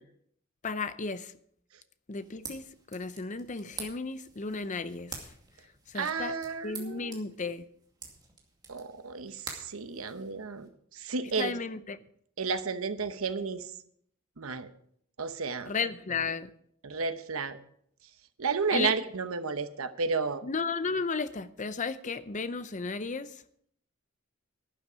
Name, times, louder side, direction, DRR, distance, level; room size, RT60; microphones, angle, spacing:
voice 1, 0.6-1.3 2.1-5.2 5.9-6.3 6.6-7.7 11.3-12.0 15.7-16.5 18.7-18.9 20.4-23.4, left 4 dB, 35° left, 0.6 m, -34 dB
sound 1, 2.1-10.7, right 4 dB, 20° right, 2.4 m, -48 dB
voice 2, 5.9-7.1 8.7-11.5 12.4-13.7 14.4-14.7 15.2-15.7 16.8-17.6 18.4-20.4, right 4 dB, 90° right, 0.9 m, -32 dB
11.5 x 11.0 x 5.1 m
head